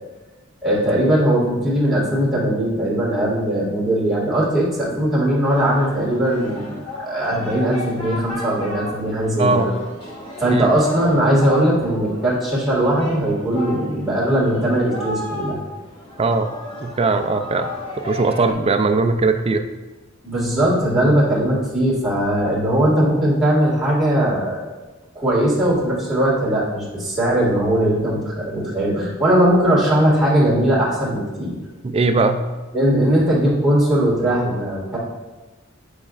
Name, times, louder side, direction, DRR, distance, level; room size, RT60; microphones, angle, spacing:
voice 1, 0.6-9.7 10.4-15.6 20.2-24.6 25.2-31.5 32.7-35.0, right 1 dB, ahead, -8 dB, 1.9 m, -19 dB
Singing, 5.4-18.5, left 1 dB, 25° left, 1.4 m, -34 dB
voice 2, 9.4-9.7 10.4-10.7 16.2-16.5 16.8-17.7 18.0-19.6 31.8-32.4, right 3 dB, 30° right, 8 dB, 0.4 m, -19 dB
8.5 x 5.0 x 2.4 m, 1.2 s
head